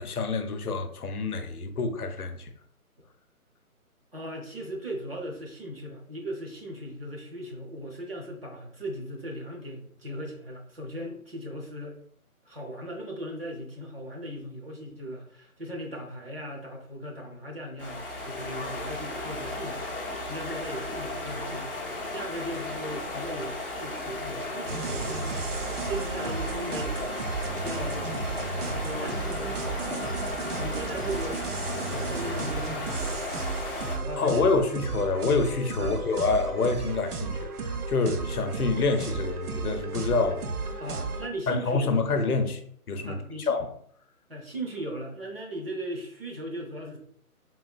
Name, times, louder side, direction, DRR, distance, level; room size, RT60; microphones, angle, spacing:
voice 1, 0.0-2.5 34.2-40.7 41.5-42.6 42.9-43.2 43.5-43.7, left 4 dB, 80° left, 0.6 m, -27 dB
voice 2, 4.1-12.0 12.5-19.8 20.3-25.2 25.9-27.2 27.6-28.1 28.5-30.2 30.6-31.5 31.9-33.2 33.9-34.5 35.8-36.0 40.8-42.0 43.0-43.6 44.3-47.0, right 1 dB, 40° right, 0.7 m, -38 dB
sound 1, 17.8-34.0, left 2 dB, 40° left, 0.5 m, -35 dB
sound 2, 24.7-41.3, right 4 dB, 80° right, 0.6 m, -34 dB
3.6 x 2.5 x 2.3 m
figure-of-eight pair, 155°, 44 cm